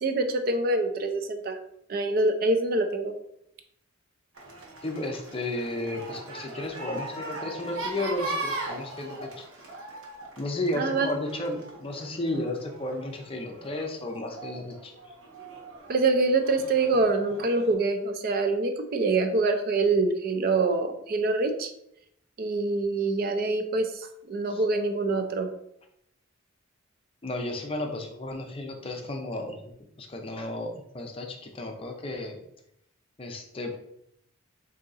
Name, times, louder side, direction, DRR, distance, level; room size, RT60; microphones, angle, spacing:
voice 1, 0.0-1.6 1.9-3.1 10.8-11.1 15.9-21.7 22.4-23.9 24.3-25.5, right 3 dB, 45° right, 8 dB, 0.4 m, -25 dB
sound 1, 4.4-17.7, right 2 dB, 70° right, 1.0 m, -40 dB
voice 2, 4.8-9.5 10.4-14.9 24.5-24.6 27.2-29.6 30.0-32.4 33.2-33.8, left 1 dB, 25° left, 2 dB, 0.5 m, -33 dB
3.6 x 2.7 x 3.9 m, 0.74 s
head